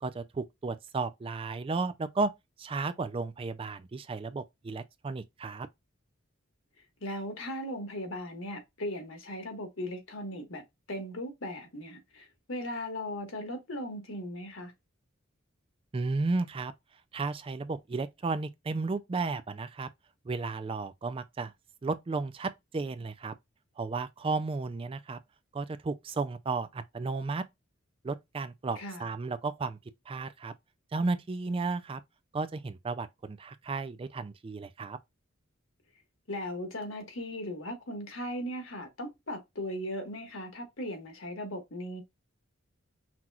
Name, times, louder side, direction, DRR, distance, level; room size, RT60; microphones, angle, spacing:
voice 1, 0.0-2.3 2.6-5.7 15.9-16.7 17.1-19.9 20.3-21.5 21.8-23.3 23.8-25.2 25.5-27.4 28.0-29.8 30.1-30.5 30.9-32.0 32.3-35.0, right 3 dB, 25° right, 0.3 m, -33 dB
voice 2, 7.0-14.7 28.7-29.1 36.3-42.0, left 1 dB, 70° left, 1.5 m, -38 dB
5.9 x 3.0 x 2.4 m
head